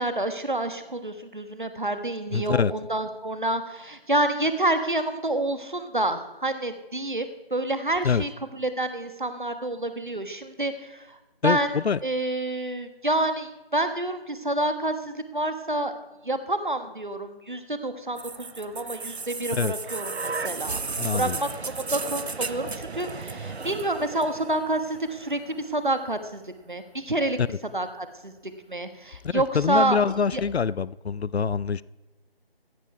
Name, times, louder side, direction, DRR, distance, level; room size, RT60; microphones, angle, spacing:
voice 1, 0.0-11.7 12.0-15.9 16.2-20.8 21.1-27.4 27.7-30.4, right 1 dB, 50° right, 9 dB, 1.4 m, -28 dB
voice 2, 2.3-2.7 8.0-8.2 11.4-12.0 19.5-19.7 21.0-21.4 27.4-27.5 29.2-31.8, left 6 dB, 85° left, 20 dB, 0.5 m, -25 dB
sound 1, 18.2-26.1 27.1-27.2, right 4 dB, 85° right, 0.8 m, -34 dB
15.5 x 9.4 x 4.6 m, 1.0 s
figure-of-eight pair, 180°, 31 cm